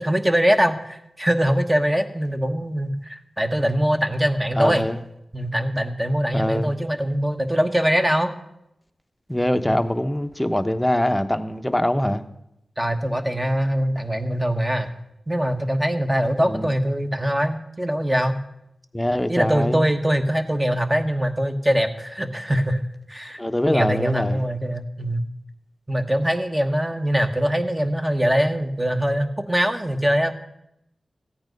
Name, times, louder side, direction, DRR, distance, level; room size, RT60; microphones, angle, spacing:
voice 1, 0.0-4.8 5.3-8.3 12.8-14.9 15.3-18.4 19.3-22.8 23.1-23.4 23.7-25.2 25.9-30.3, equal, 15° right, 1.2 m, -22 dB
voice 2, 4.5-5.0 6.3-6.8 9.3-12.2 16.5-16.7 18.9-19.8 23.4-24.4, left 1 dB, 10° left, 0.8 m, -23 dB
14.5 x 8.8 x 5.2 m
wide cardioid pair, 65°, 0 cm